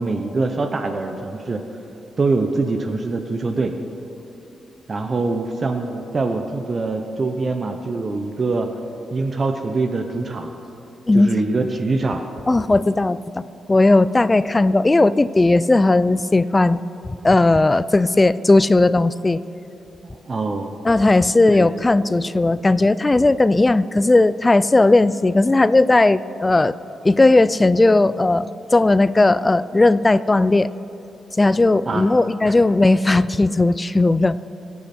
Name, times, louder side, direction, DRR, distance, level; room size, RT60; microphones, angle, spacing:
voice 1, 0.0-1.6 2.2-3.7 4.9-8.7 9.1-10.5 11.1-12.2 20.0-20.7 21.5-21.7 31.9-32.1 32.5-32.6, right 3 dB, 35° right, 6 dB, 0.7 m, -24 dB
voice 2, 12.5-13.4 13.7-16.8 17.2-19.4 20.8-26.8 27.0-30.7 31.4-34.4, left 2 dB, 20° left, 16 dB, 0.3 m, -16 dB
23.0 x 8.5 x 4.3 m, 2.8 s
cardioid pair, 120°, 0 cm